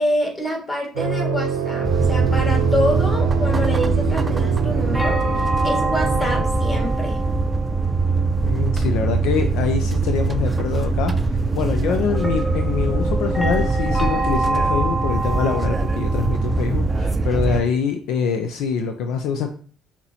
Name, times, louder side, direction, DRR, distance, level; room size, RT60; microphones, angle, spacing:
voice 1, 0.0-7.2, left 1 dB, 25° left, 0 dB, 1.8 m, -26 dB
sound 1, 0.9-6.4, right 7 dB, 85° right, 0.5 m, -25 dB
sound 2, 1.8-17.6, right 3 dB, 30° right, 0.4 m, -22 dB
sound 3, 4.9-8.6 12.1-16.7, right 2 dB, 5° left, 1.1 m, -27 dB
voice 2, 8.4-19.5, left 6 dB, 70° left, 5 dB, 0.4 m, -24 dB
5.9 x 2.8 x 2.7 m, 0.42 s
hypercardioid pair, 55°, 0 cm